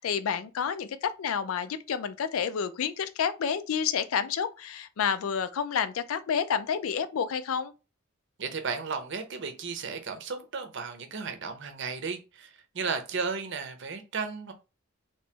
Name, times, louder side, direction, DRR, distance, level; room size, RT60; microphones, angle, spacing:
voice 1, 0.0-7.7, left 7 dB, 90° left, 0.4 m, -29 dB
voice 2, 8.4-14.5, right 5 dB, 60° right, 0.7 m, -34 dB
3.1 x 2.9 x 3.3 m
head